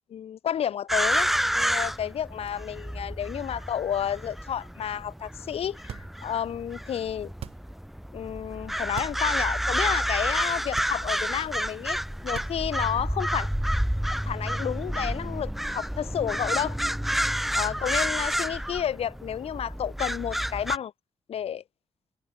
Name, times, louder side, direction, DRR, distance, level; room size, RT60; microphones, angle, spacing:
voice 1, 0.1-7.3 8.1-12.0 12.2-13.5 14.2-16.8 17.5-20.9 21.3-21.6, left 9 dB, 80° left, 4.5 m, -31 dB
sound 1, 0.9-20.8, equal, ahead, 3.8 m, -29 dB
sound 2, 5.9-6.5 7.3-7.9 8.8-9.3 9.7-9.8 10.7-11.4 12.2-12.9, right 9 dB, 75° right, 2.7 m, -41 dB
open air
wide cardioid pair, 140°, 10 cm